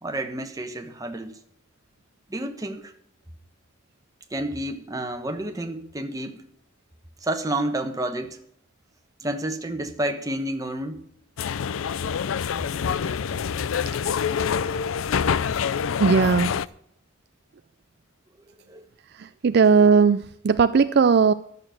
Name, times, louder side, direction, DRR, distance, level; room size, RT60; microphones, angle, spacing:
voice 1, 0.0-1.4 2.3-2.9 4.3-6.5 7.2-8.4 9.2-11.1 18.7-18.9, right 1 dB, 20° right, 6 dB, 1.1 m, -30 dB
sound 1, 11.4-16.7, left 7 dB, 90° left, 0.4 m, -26 dB
voice 2, 16.0-16.6 19.2-21.3, right 5 dB, 55° right, 12 dB, 0.4 m, -18 dB
11.5 x 6.7 x 9.1 m, 0.66 s
head